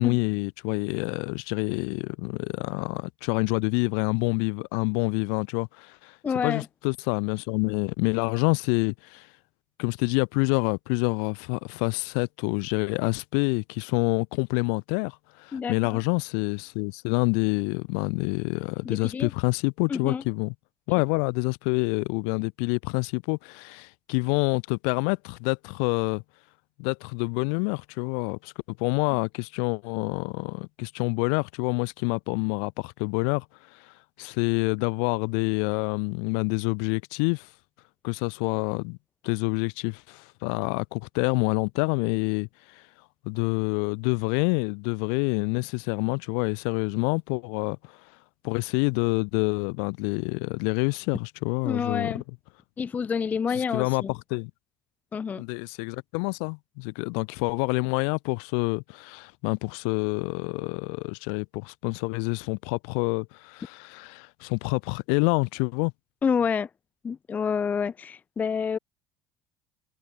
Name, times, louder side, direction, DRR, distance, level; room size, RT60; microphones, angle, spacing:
voice 1, 0.0-6.1 6.4-9.3 9.8-20.5 20.9-26.2 26.8-33.4 33.7-33.8 34.2-37.5 38.0-39.0 39.2-42.8 43.2-47.9 48.4-52.2 53.5-54.5 55.4-65.9, left 40 dB or more, 80° left, 1.6 m, -27 dB
voice 2, 6.2-6.7 15.5-16.0 18.9-19.3 19.9-20.2 51.6-52.2 52.8-54.1 55.1-55.4 66.2-66.7 67.0-68.8, left 6 dB, 25° left, 0.3 m, -28 dB
supercardioid pair, 95°, 6 cm